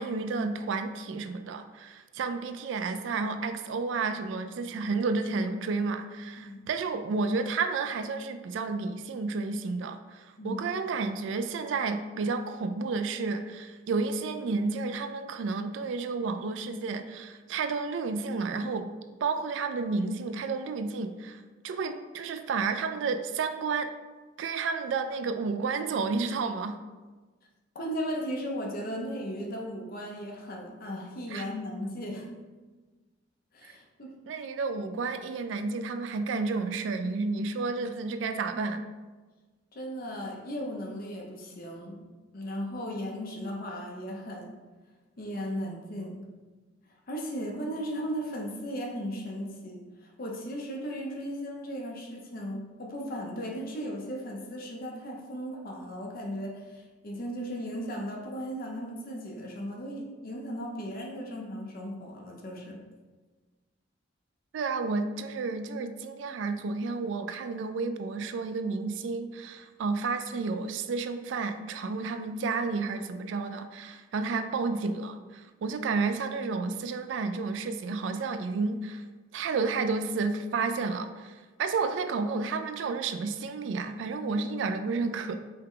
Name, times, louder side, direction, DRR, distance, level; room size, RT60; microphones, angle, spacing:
voice 1, 0.0-18.9 19.2-23.9 24.4-26.8 31.3-31.5 33.6-33.7 34.3-38.9 64.5-79.0 79.3-85.4, right 4 dB, 75° right, 8 dB, 0.3 m, -31 dB
voice 2, 27.7-32.3 33.5-34.1 39.7-42.1 42.3-44.6 45.2-46.3 47.1-62.8, equal, 50° left, 0 dB, 0.7 m, -36 dB
5.5 x 2.2 x 3.7 m, 1.3 s
head